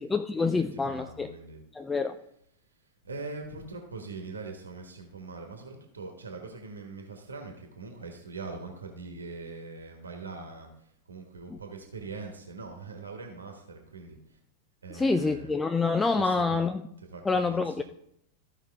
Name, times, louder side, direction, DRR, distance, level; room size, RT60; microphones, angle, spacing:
voice 1, 0.0-1.3 1.7-2.2 11.5-11.6 14.9-16.8 17.2-17.8, left 4 dB, 10° left, 8 dB, 0.4 m, -27 dB
voice 2, 0.7-1.6 3.0-10.7 11.1-14.2 14.8-15.5 16.2-16.7 17.0-17.8, right 3 dB, 75° right, 3 dB, 1.4 m, -42 dB
14.0 x 5.4 x 3.5 m, 0.74 s
figure-of-eight pair, 90°, 0 cm